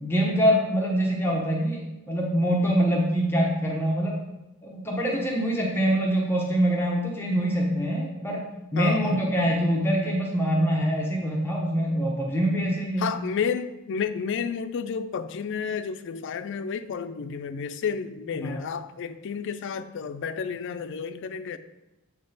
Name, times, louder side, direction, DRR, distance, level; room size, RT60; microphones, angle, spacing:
voice 1, 0.0-4.2 4.6-13.1 18.4-18.6, equal, 10° left, -2 dB, 0.8 m, -24 dB
voice 2, 8.8-9.2 13.0-21.6, left 6 dB, 55° left, 10 dB, 0.3 m, -31 dB
7.5 x 3.7 x 4.0 m, 1.0 s
head